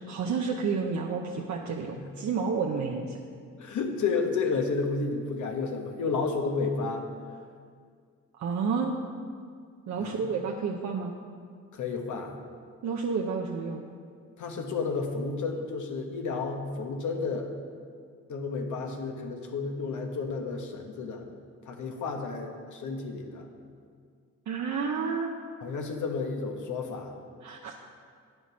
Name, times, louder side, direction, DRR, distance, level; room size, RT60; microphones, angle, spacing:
voice 1, 0.1-3.2 8.4-8.9 9.9-11.1 12.8-13.9 24.5-25.3 27.4-27.8, right 5 dB, 60° right, 0 dB, 0.8 m, -30 dB
voice 2, 3.6-7.1 10.0-10.2 11.7-12.3 14.4-17.5 18.3-21.3 21.6-23.5 25.6-27.1, left 4 dB, 70° left, 3 dB, 1.2 m, -31 dB
8.9 x 6.3 x 6.2 m, 2.1 s
cardioid pair, 75°, 31 cm